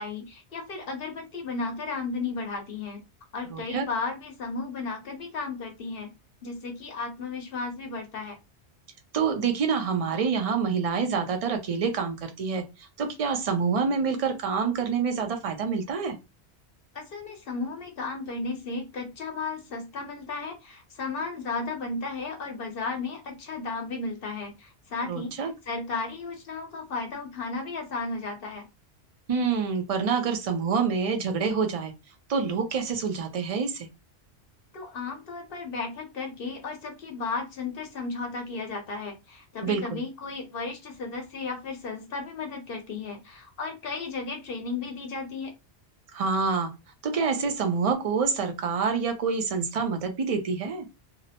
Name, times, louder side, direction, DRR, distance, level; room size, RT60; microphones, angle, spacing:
voice 1, 0.0-3.0 3.3-6.1 6.4-8.4 16.9-28.7 34.7-45.5, left 4 dB, 60° left, 0.9 m, -34 dB
voice 2, 3.5-3.9 9.1-16.2 25.1-25.5 29.3-31.9 32.3-33.9 39.6-40.0 46.1-46.7 47.0-50.9, right 5 dB, 50° right, 0.4 m, -27 dB
2.7 x 2.0 x 2.7 m
omnidirectional pair, 1.2 m